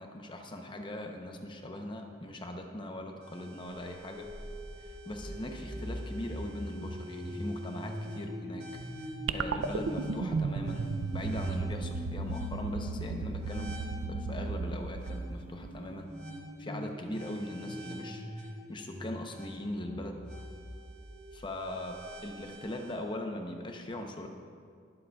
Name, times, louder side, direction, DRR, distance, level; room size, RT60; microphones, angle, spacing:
voice 1, 0.0-4.3 4.8-8.6 9.3-13.8 14.2-16.1 16.6-20.2 21.3-22.0 22.2-24.3, left 1 dB, 25° left, 4 dB, 0.7 m, -40 dB
sound 1, 3.2-23.0, equal, 55° right, 2.8 m, -43 dB
sound 2, 9.3-15.8, right 4 dB, 90° right, 0.4 m, -35 dB
19.5 x 7.7 x 2.3 m, 2.2 s
head